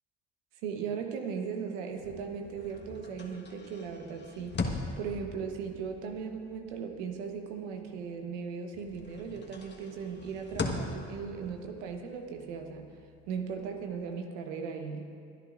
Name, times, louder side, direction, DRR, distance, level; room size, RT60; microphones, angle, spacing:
voice 1, 0.6-12.9 13.3-15.1, right 6 dB, 85° right, 5 dB, 1.2 m, -38 dB
sound 1, 1.9-8.4 8.7-14.1, left 3 dB, 30° left, 1.4 m, -41 dB
22.0 x 10.5 x 2.5 m, 2.4 s
supercardioid pair, 70°, 33 cm